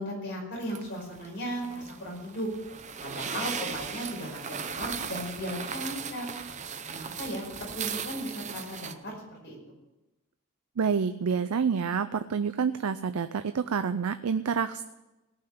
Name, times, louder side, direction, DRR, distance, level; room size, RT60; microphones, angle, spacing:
voice 1, 0.0-2.5 3.0-6.3 6.8-9.6, equal, 50° left, -2 dB, 5.3 m, -36 dB
sound 1, 0.6-8.9, right 6 dB, 30° right, 0.7 m, -37 dB
voice 2, 10.8-14.8, right 6 dB, 85° right, 11 dB, 0.5 m, -28 dB
17.5 x 5.8 x 8.4 m, 1.0 s
head